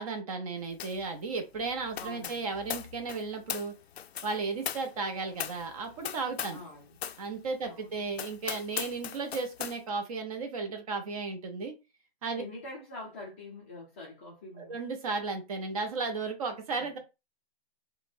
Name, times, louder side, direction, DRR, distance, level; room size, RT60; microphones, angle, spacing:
voice 1, 0.0-3.7 4.2-6.6 7.2-11.7 12.2-12.4 14.6-17.0, right 4 dB, 35° right, 0.7 m, -34 dB
sound 1, 0.8-1.1 1.3-6.7 7.0-7.2 7.7-7.8 8.1-9.8, left 9 dB, 85° left, 0.5 m, -39 dB
voice 2, 1.9-2.5 6.5-7.2 7.6-8.0 12.3-14.8 16.8-17.0, left 2 dB, 10° left, 0.4 m, -45 dB
3.9 x 2.1 x 2.6 m
hypercardioid pair, 155°, 31 cm